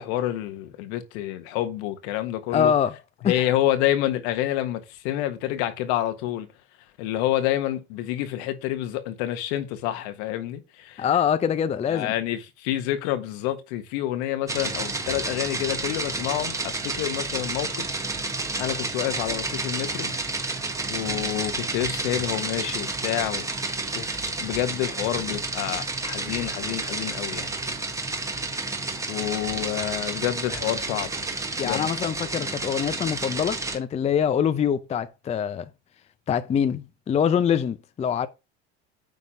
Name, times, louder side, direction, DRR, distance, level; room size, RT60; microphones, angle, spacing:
voice 1, 0.0-2.7 3.2-6.5 7.0-11.0 11.9-17.9 18.6-20.1 20.9-23.5 24.0-24.1 24.4-27.5 29.1-31.1 31.6-31.9, left 13 dB, 75° left, 1.6 m, -28 dB
voice 2, 2.5-3.0 3.2-3.5 11.0-12.1 31.6-35.7 36.3-38.3, left 8 dB, 20° left, 0.5 m, -24 dB
sound 1, 14.5-33.8, right 3 dB, 10° right, 1.3 m, -30 dB
9.4 x 3.6 x 5.7 m
supercardioid pair, 125°, 33 cm